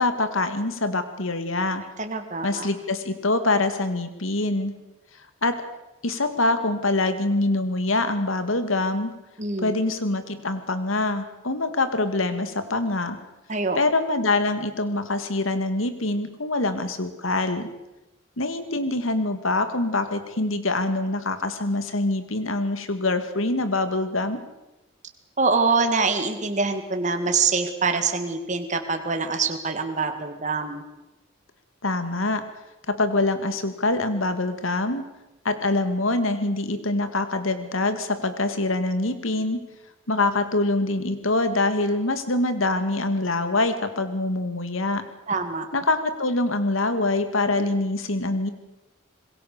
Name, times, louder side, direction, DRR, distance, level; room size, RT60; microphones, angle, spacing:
voice 1, 0.0-1.8 2.4-4.8 5.4-5.6 6.0-9.1 9.6-13.2 13.8-17.7 18.4-24.4 31.8-32.4 32.9-35.0 35.4-39.6 40.1-45.0 45.7-48.5, left 2 dB, 75° left, 9 dB, 2.2 m, -24 dB
voice 2, 2.0-2.7 9.4-9.7 13.5-13.8 25.4-30.8 45.3-45.7, right 4 dB, 35° right, 6 dB, 2.0 m, -25 dB
26.0 x 21.5 x 6.8 m, 0.98 s
head